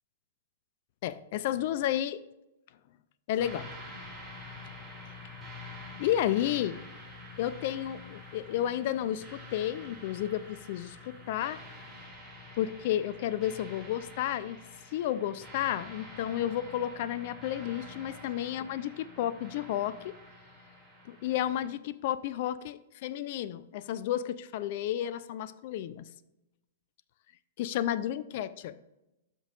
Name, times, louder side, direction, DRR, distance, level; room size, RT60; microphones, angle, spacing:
voice 1, 1.0-2.2 3.3-3.7 6.0-6.8 7.4-11.6 12.6-14.6 14.9-20.1 21.1-26.1 27.6-28.8, left 11 dB, 50° left, 15 dB, 0.4 m, -32 dB
sound 1, 3.4-21.7, left 2 dB, 10° right, 2.4 m, -47 dB
12.5 x 5.3 x 2.4 m, 0.92 s
figure-of-eight pair, 105°, 0 cm